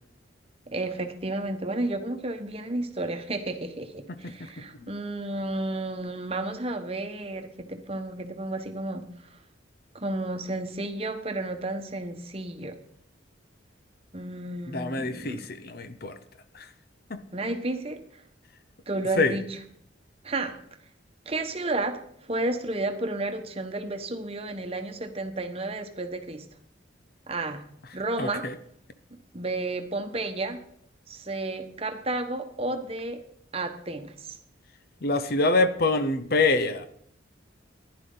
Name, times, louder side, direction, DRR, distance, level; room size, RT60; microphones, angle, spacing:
voice 1, 0.7-9.1 9.9-12.8 14.1-15.5 17.3-18.2 18.9-19.6 20.2-20.6 21.2-22.0 22.3-26.4 27.3-27.6 27.9-28.5 29.3-30.6 31.1-33.2 33.5-34.4, right 2 dB, 30° right, 6 dB, 1.1 m, -32 dB
voice 2, 14.7-16.2 16.5-16.7 17.1-17.2 19.2-19.3 28.2-28.5 35.0-36.9, left 3 dB, 50° left, 11 dB, 0.7 m, -25 dB
15.0 x 10.5 x 3.9 m, 0.67 s
head